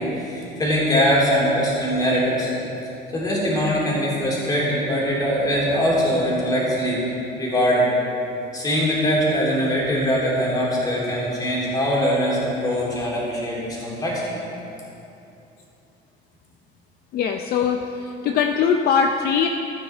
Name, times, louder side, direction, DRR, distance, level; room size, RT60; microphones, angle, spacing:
voice 1, 0.0-2.5 3.1-7.0 7.4-7.9 8.5-14.4, equal, 20° left, -5 dB, 3.1 m, -22 dB
voice 2, 17.1-19.5, left 7 dB, 55° left, 5 dB, 0.6 m, -21 dB
14.0 x 9.0 x 4.5 m, 2.8 s
cardioid pair, 145°, 19 cm